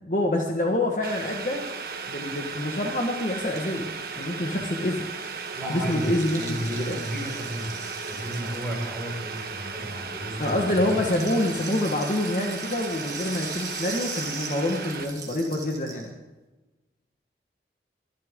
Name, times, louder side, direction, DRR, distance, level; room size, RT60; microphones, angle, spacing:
voice 1, 0.0-1.7 2.1-3.9 4.2-5.0 5.7-7.0 10.4-16.1, left 1 dB, 45° left, 1 dB, 1.4 m, -26 dB
Boiling, 1.0-15.0, right 4 dB, 55° right, 1.5 m, -36 dB
Rattle (instrument), 2.8-9.9 10.2-16.1, right 4 dB, 20° right, 2.8 m, -40 dB
voice 2, 5.5-7.7 8.1-11.0, equal, ahead, -3 dB, 5.0 m, -33 dB
23.5 x 12.0 x 3.7 m, 1.1 s
head